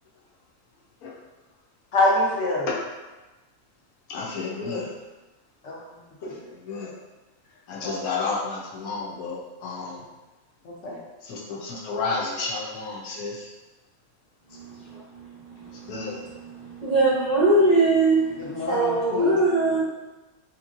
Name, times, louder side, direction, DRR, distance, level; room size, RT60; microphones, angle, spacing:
voice 1, 1.9-2.7 5.6-5.7 6.2-6.3 7.8-8.0 10.6-11.0 18.5-19.4, left 2 dB, 60° left, -4 dB, 1.0 m, -24 dB
voice 2, 4.1-4.9 6.2-6.9 7.7-10.0 11.2-13.5 15.6-16.2, left 4 dB, 85° left, -4 dB, 1.2 m, -31 dB
voice 3, 14.5-15.9 16.5-19.8, right 2 dB, 45° right, -10 dB, 0.6 m, -22 dB
2.9 x 2.8 x 2.5 m, 1.1 s
omnidirectional pair, 1.5 m